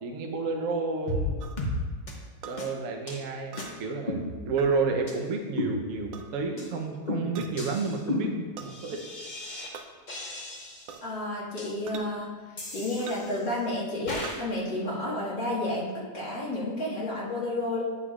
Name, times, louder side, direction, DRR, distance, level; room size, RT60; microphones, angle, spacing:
voice 1, 0.0-1.5 2.5-9.0, right 4 dB, 55° right, 2 dB, 1.0 m, -31 dB
sound 1, 1.1-1.3 1.6-1.8 2.1-2.2 2.6-2.7 3.1-3.2 3.6-3.7 4.1-4.7 5.1-5.2 5.6-6.2 6.6-6.7 7.1-9.7 10.1-11.0 11.6-11.7 12.6-13.5 14.1-14.4, left 1 dB, 35° left, 0.8 m, -34 dB
sound 2, 1.4-1.6 2.4-2.6 3.5-3.8 4.6-4.7 6.0-6.3 7.3-7.5 8.6-8.7 9.7-9.9 10.9-11.1 11.9-12.1 13.0-13.3 14.2-14.4, right 7 dB, 80° right, 0.7 m, -42 dB
voice 2, 11.0-12.3 12.7-17.8, left 1 dB, 65° left, -8 dB, 2.8 m, -31 dB
9.1 x 8.3 x 2.5 m, 1.4 s
omnidirectional pair, 2.2 m